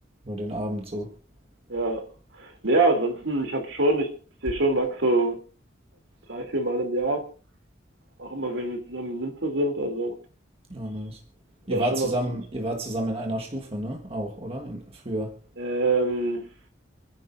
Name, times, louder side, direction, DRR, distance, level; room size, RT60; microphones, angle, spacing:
voice 1, 0.2-1.1 10.7-11.2 11.7-15.3, right 1 dB, 30° right, 1.6 m, -30 dB
voice 2, 1.7-2.0 2.4-4.1 4.4-5.4 6.3-7.2 8.2-10.1 11.7-12.4 15.6-16.5, right 2 dB, 70° right, 3.1 m, -25 dB
28.5 x 10.5 x 2.7 m
head